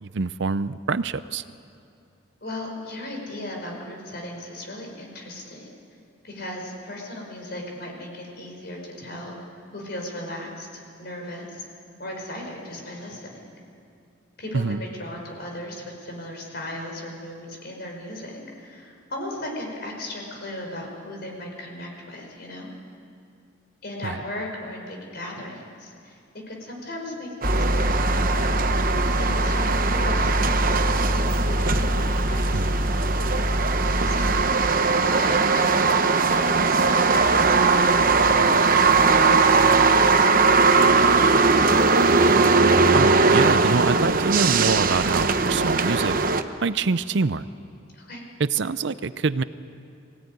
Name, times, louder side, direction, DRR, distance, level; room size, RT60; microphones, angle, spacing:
voice 1, 0.0-1.4 14.5-14.8 24.0-24.2 32.5-32.8 42.9-46.2 46.6-47.4 48.4-49.4, right 4 dB, 60° right, 15 dB, 0.6 m, -25 dB
voice 2, 2.4-5.7 6.2-9.4 9.7-11.6 12.0-13.4 14.4-22.7 23.8-26.2 26.5-28.8 29.1-32.8 34.1-34.3 35.0-37.4 37.6-41.4 47.9-48.2, left 1 dB, 50° left, 1 dB, 4.9 m, -37 dB
Mechanical fan, 27.4-34.4, equal, 5° left, 0.5 m, -25 dB
sound 1, 27.4-46.4, right 4 dB, 45° right, 0.9 m, -20 dB
24.0 x 17.0 x 9.5 m, 2.5 s
head